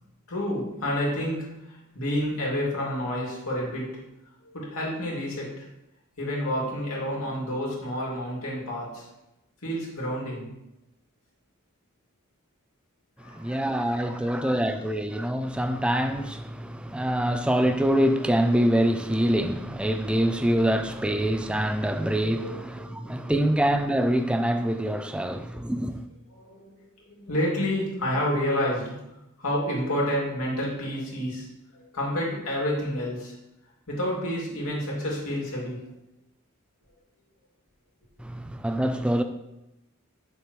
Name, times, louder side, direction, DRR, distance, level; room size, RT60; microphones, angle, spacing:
voice 1, 0.3-4.0 4.4-5.7 6.2-9.1 9.6-10.5 13.2-14.8 21.8-23.2 26.3-26.8 27.1-28.9 29.4-31.5 31.7-33.3 33.9-35.8, equal, 85° left, 2.6 m, -30 dB
voice 2, 13.2-26.1 38.2-39.2, right 1 dB, 5° right, 0.4 m, -25 dB
8.6 x 6.5 x 3.1 m
head